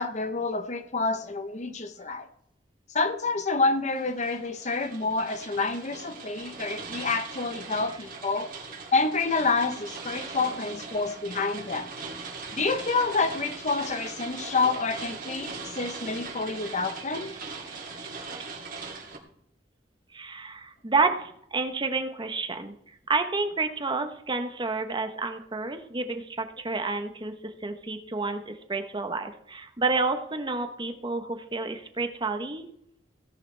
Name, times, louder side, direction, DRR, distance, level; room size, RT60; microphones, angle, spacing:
voice 1, 0.0-2.3 2.9-8.5 8.9-11.9 12.5-17.3, left 3 dB, 40° left, 10 dB, 0.9 m, -28 dB
sound 1, 3.9-19.2, right 4 dB, 50° right, 2.8 m, -40 dB
voice 2, 17.6-18.2 20.1-32.7, right 3 dB, 25° right, 7 dB, 1.0 m, -30 dB
17.0 x 10.5 x 3.4 m, 0.71 s
head